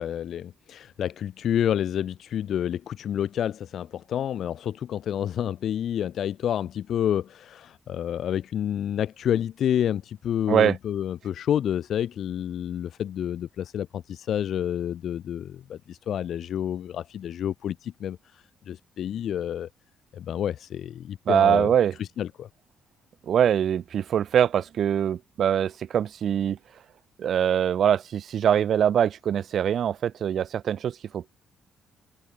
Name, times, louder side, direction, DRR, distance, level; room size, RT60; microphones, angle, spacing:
voice 1, 0.0-19.7 20.1-21.7 22.0-22.5, left 10 dB, 65° left, 1.8 m, -29 dB
voice 2, 21.3-21.9 23.3-26.6 27.2-31.3, right 9 dB, 60° right, 4.7 m, -23 dB
cardioid pair, 90°, 0 cm